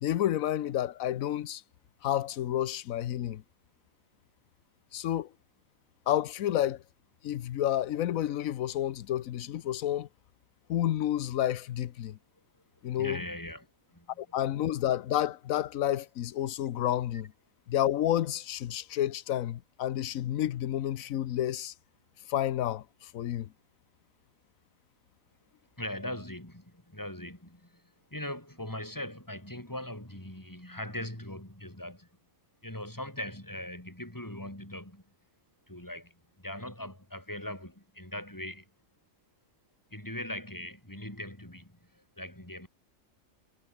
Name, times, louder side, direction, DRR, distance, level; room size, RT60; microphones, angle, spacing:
voice 1, 0.0-1.6 2.0-3.4 4.9-5.3 6.1-6.8 7.2-10.1 10.7-12.2 12.8-13.2 14.2-17.3 17.7-21.7 22.3-23.5, left 12 dB, 80° left, 1.2 m, -30 dB
voice 2, 12.9-14.4 25.8-32.2 32.6-35.1 35.7-38.7 39.9-42.7, left 1 dB, 15° left, 5.5 m, -40 dB
omnidirectional pair, 1.4 m